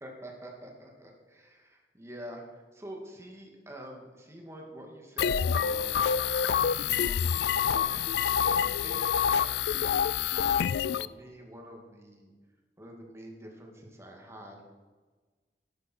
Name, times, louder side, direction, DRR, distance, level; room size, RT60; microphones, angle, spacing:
voice 1, 0.0-6.1 6.5-8.0 8.6-10.1 10.9-12.3 12.8-14.6, right 1 dB, 15° right, 0 dB, 2.2 m, -47 dB
sound 1, 5.2-11.1, left 8 dB, 65° left, 0.3 m, -27 dB
13.0 x 11.5 x 4.6 m, 1.4 s
head